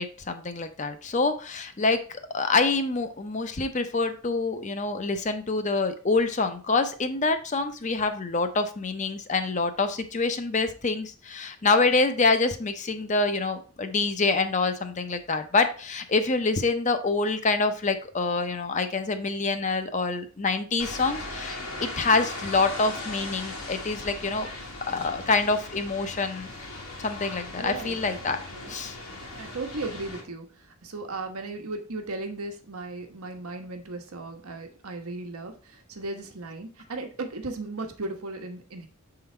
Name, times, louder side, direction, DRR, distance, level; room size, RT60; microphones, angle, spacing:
voice 1, 0.0-24.5 24.9-26.5 27.0-28.4 28.7-29.0, left 3 dB, 35° left, 8 dB, 0.6 m, -26 dB
sound 1, 20.8-30.2, left 2 dB, 85° left, 1.8 m, -38 dB
voice 2, 27.6-28.7 29.3-38.9, right 2 dB, 90° right, 4 dB, 1.1 m, -36 dB
6.9 x 3.9 x 4.3 m, 0.39 s
head